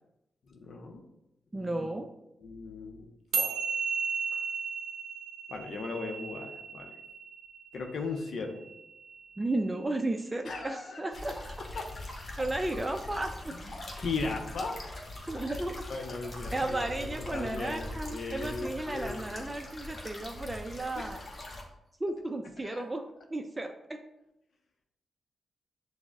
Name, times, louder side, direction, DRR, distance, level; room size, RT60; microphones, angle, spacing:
voice 1, 0.6-1.0 1.5-1.9 2.4-3.1 3.3-3.6 5.5-6.9 7.7-8.7 10.5-11.0 13.5-13.6 14.0-14.8 15.9-19.5 21.0-21.2 22.6-22.8, left 3 dB, 70° left, 2 dB, 0.5 m, -37 dB
voice 2, 1.5-2.1 9.4-11.4 12.4-13.6 15.3-15.9 16.5-21.2 22.0-23.0 23.3-24.0, right 2 dB, 25° right, 5 dB, 0.4 m, -34 dB
sound 1, 3.3-9.9, right 5 dB, 85° right, 0.6 m, -35 dB
sound 2, 11.1-21.6, left 1 dB, 45° left, 1.0 m, -42 dB
6.0 x 2.1 x 3.5 m, 0.87 s
supercardioid pair, 55°, 0 cm